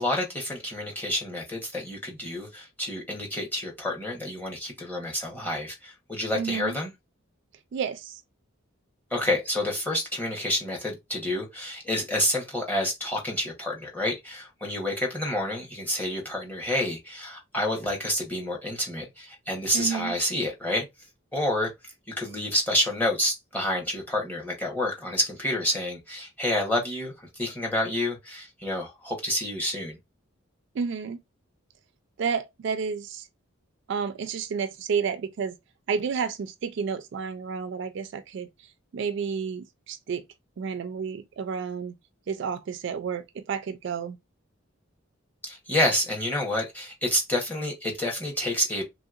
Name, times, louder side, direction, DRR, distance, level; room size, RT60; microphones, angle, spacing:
voice 1, 0.0-6.9 9.1-20.8 21.3-21.7 22.1-30.0 45.4-48.8, left 1 dB, 10° left, 0.9 m, -29 dB
voice 2, 6.3-6.8 7.7-8.2 19.7-20.1 30.7-31.2 32.2-33.3 33.9-35.6 35.9-38.5 38.9-40.2 40.6-42.0 42.3-44.2, right 6 dB, 60° right, 0.3 m, -30 dB
3.2 x 2.7 x 2.4 m
head